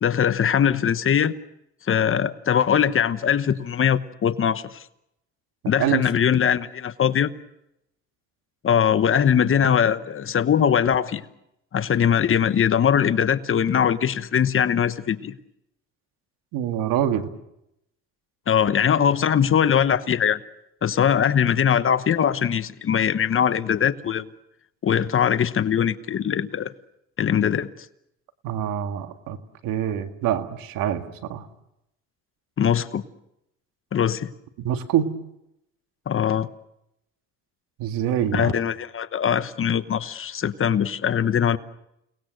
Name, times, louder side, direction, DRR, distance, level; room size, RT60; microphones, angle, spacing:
voice 1, 0.0-1.3 1.9-4.8 5.7-7.3 8.6-11.2 11.7-15.3 18.5-20.4 20.8-24.3 24.8-26.7 27.2-27.7 32.6-33.0 33.9-34.3 36.1-36.5 38.3-41.6, left 8 dB, 40° left, 1.1 m, -21 dB
voice 2, 16.5-17.3 28.4-29.4 29.6-31.5 34.6-35.1 37.8-38.5, right 10 dB, 80° right, 2.0 m, -25 dB
30.0 x 19.5 x 6.5 m
cardioid pair, 100°, 33 cm